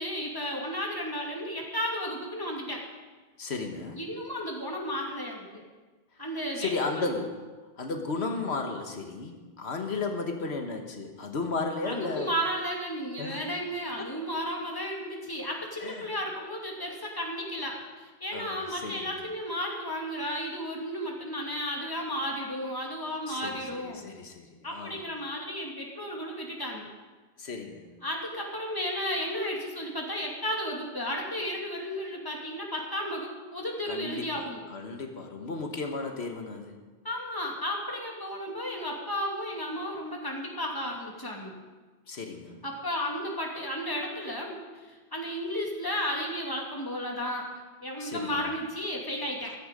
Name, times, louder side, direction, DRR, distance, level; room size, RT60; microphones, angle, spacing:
voice 1, 0.0-2.8 4.0-5.5 6.2-7.1 11.8-24.1 24.6-26.9 28.0-34.6 37.0-41.5 42.6-49.5, equal, 20° left, -1 dB, 2.5 m, -33 dB
voice 2, 3.4-4.0 6.5-7.3 7.8-12.3 13.2-13.4 14.0-14.1 15.8-16.1 18.3-19.0 23.3-25.0 27.4-27.9 33.9-34.3 34.7-36.8 42.1-42.6 48.0-48.5, left 3 dB, 85° left, 4 dB, 1.6 m, -34 dB
15.0 x 13.0 x 5.2 m, 1.3 s
omnidirectional pair, 1.1 m